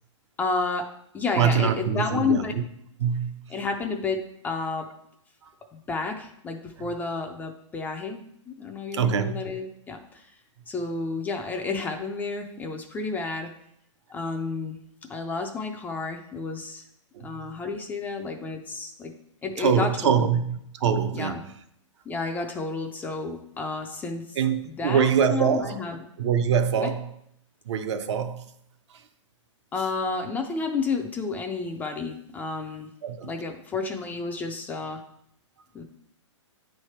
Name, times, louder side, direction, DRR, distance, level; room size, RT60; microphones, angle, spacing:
voice 1, 0.4-0.9 1.1-2.5 3.5-4.8 5.7-10.3 10.7-13.5 14.1-14.8 15.1-16.8 17.2-19.1 19.4-20.3 21.1-21.4 22.1-24.4 24.7-26.1 26.8-26.9 29.7-32.9 33.2-35.0 35.7-35.8, left 4 dB, 10° left, 0.4 m, -31 dB
voice 2, 1.4-2.6 3.0-3.5 5.4-5.5 8.9-9.4 17.1-17.3 19.6-21.4 24.4-25.8 26.2-27.1 27.7-28.5 33.0-33.3, right 7 dB, 65° right, 0.6 m, -24 dB
8.8 x 3.3 x 4.3 m
hypercardioid pair, 140°, 16 cm